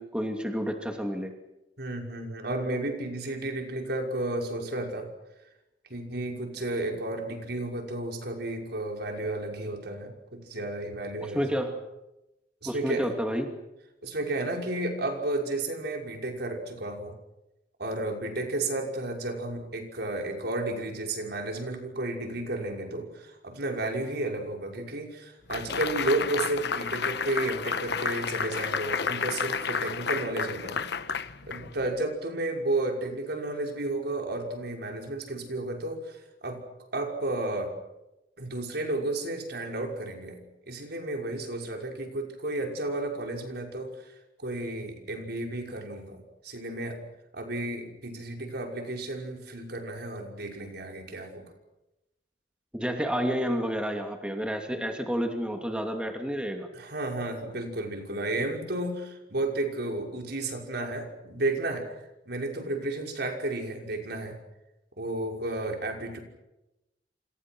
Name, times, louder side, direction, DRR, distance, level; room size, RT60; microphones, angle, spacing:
voice 1, 0.0-1.3 11.2-11.8 12.6-13.5 52.7-56.7, equal, 5° right, 3 dB, 2.6 m, -30 dB
voice 2, 1.8-5.1 5.9-11.4 12.6-13.1 14.0-17.1 17.8-30.8 31.5-36.6 36.9-37.7 38.4-40.4 40.7-44.1 44.4-47.0 47.3-51.5 56.7-61.9 62.3-64.4 65.0-66.2, right 2 dB, 60° right, 2 dB, 5.8 m, -32 dB
sound 1, 25.5-32.0, left 6 dB, 65° left, 1.2 m, -31 dB
28.0 x 28.0 x 6.2 m, 0.95 s
head